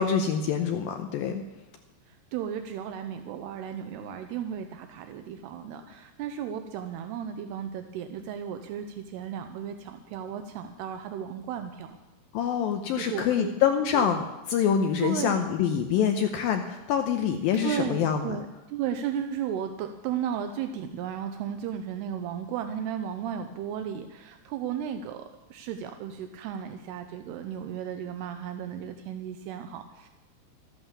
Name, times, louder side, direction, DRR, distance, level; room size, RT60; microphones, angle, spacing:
voice 1, 0.0-1.4 12.3-18.4, left 8 dB, 80° left, 6 dB, 2.1 m, -26 dB
voice 2, 2.1-12.0 13.0-13.5 13.9-14.1 15.0-15.4 17.6-30.1, right 8 dB, 80° right, 7 dB, 2.6 m, -34 dB
13.0 x 11.5 x 7.3 m, 1.0 s
omnidirectional pair, 4.9 m